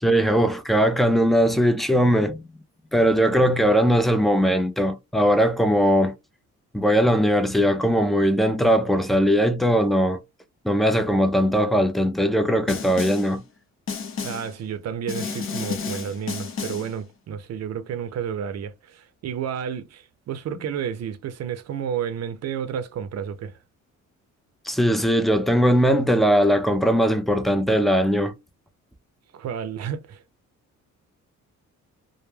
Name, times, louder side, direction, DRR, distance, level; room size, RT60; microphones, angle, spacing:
voice 1, 0.0-2.4 2.9-6.1 6.7-10.2 10.6-13.4 24.7-28.4, equal, ahead, 0.3 m, -20 dB
Snare drum, 12.7-13.4 13.9-14.6 15.1-17.0, left 5 dB, 45° left, 0.6 m, -31 dB
voice 2, 14.2-23.6 29.3-30.2, right 8 dB, 60° right, 0.5 m, -31 dB
2.2 x 2.1 x 3.1 m
cardioid pair, 90°, 30 cm